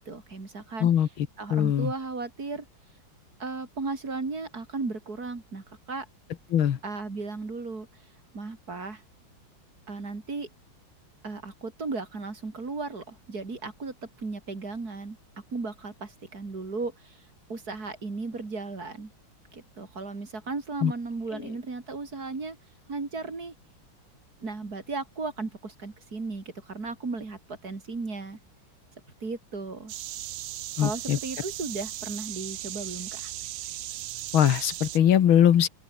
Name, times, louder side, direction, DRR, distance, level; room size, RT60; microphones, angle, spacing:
voice 1, 0.0-0.9 1.4-2.7 3.4-6.1 6.8-7.9 8.3-9.0 9.9-10.5 11.2-15.2 15.5-17.2 17.5-19.1 19.5-22.6 22.9-23.5 24.4-28.4 29.2-29.9 30.8-33.3, right 3 dB, 45° right, 4.0 m, -35 dB
voice 2, 0.8-1.9 6.5-6.8 20.8-20.9 21.3-21.5 30.8-31.2 34.3-35.7, left 10 dB, 80° left, 2.1 m, -22 dB
sound 1, 29.9-35.0, right 14 dB, 75° right, 1.6 m, -37 dB
open air
omnidirectional pair, 2.2 m